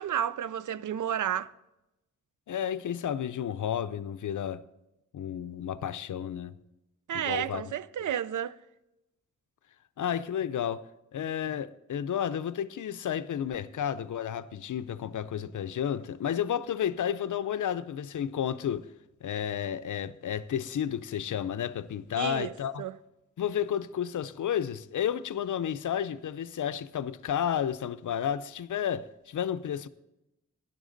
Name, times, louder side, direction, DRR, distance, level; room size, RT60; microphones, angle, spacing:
voice 1, 0.0-1.5 7.1-8.6 22.2-22.5 22.8-22.9, right 10 dB, 85° right, 0.5 m, -31 dB
voice 2, 2.5-4.6 5.1-6.5 7.1-7.6 10.0-10.8 11.1-18.9 19.2-22.8 23.4-29.9, left 9 dB, 85° left, 0.5 m, -32 dB
12.5 x 10.5 x 3.9 m
wide cardioid pair, 75°, 30 cm